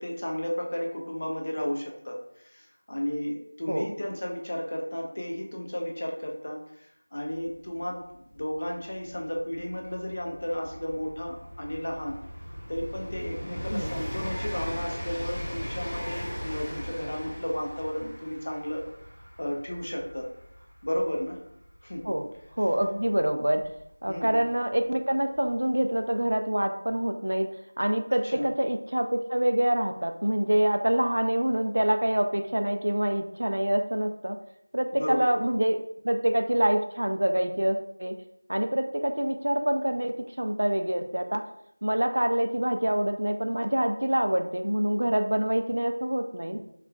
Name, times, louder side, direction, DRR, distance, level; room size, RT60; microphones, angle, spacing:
voice 1, 0.0-12.2 12.7-18.9 19.4-20.3 20.8-21.4 21.8-22.1 24.1-24.4 28.2-28.5 34.9-35.3, equal, 40° left, 1 dB, 0.5 m, -33 dB
Train, 7.5-7.6 7.7-24.4 25.3-25.4, equal, ahead, 0.9 m, -39 dB
voice 2, 22.6-23.6 24.0-27.5 27.8-34.4 34.7-35.8 36.0-38.1 38.5-41.4 41.8-46.6, right 1 dB, 60° right, 6 dB, 0.3 m, -26 dB
4.4 x 2.2 x 2.2 m, 0.74 s
figure-of-eight pair, 175°, 0 cm